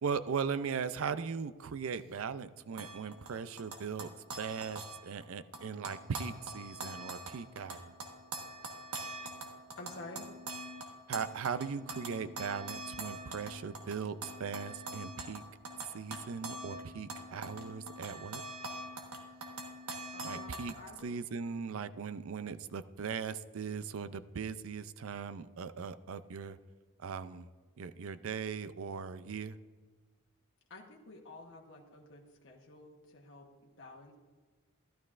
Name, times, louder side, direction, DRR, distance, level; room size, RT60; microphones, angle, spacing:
voice 1, 0.0-4.1 4.4-7.9 11.1-15.4 15.9-18.4 20.2-20.7 21.0-26.6 27.0-27.5 27.8-29.6, right 6 dB, 70° right, 13 dB, 0.4 m, -39 dB
sound 1, 2.8-5.3 5.5-21.0, right 2 dB, 90° right, 1.4 m, -44 dB
voice 2, 9.8-10.3 20.1-21.1 30.7-34.2, left 2 dB, 60° left, -1 dB, 1.1 m, -50 dB
12.5 x 12.0 x 2.5 m, 1.4 s
head